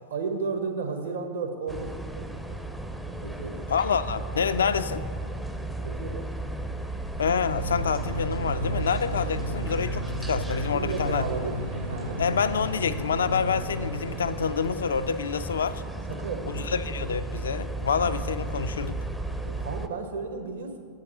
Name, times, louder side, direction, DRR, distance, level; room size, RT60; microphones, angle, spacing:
voice 1, 0.1-2.0 3.2-3.7 4.4-4.7 5.8-6.3 10.7-12.2 16.1-16.7 19.4-20.8, right 4 dB, 65° right, 1.0 m, -33 dB
sound 1, 1.7-19.9, right 2 dB, ahead, 0.5 m, -35 dB
voice 2, 3.7-5.0 7.2-11.3 12.2-15.8 16.5-19.0, left 6 dB, 70° left, 0.3 m, -27 dB
sound 2, 7.4-14.3, equal, 80° right, 0.6 m, -34 dB
8.1 x 4.9 x 7.3 m
figure-of-eight pair, 90°, 0 cm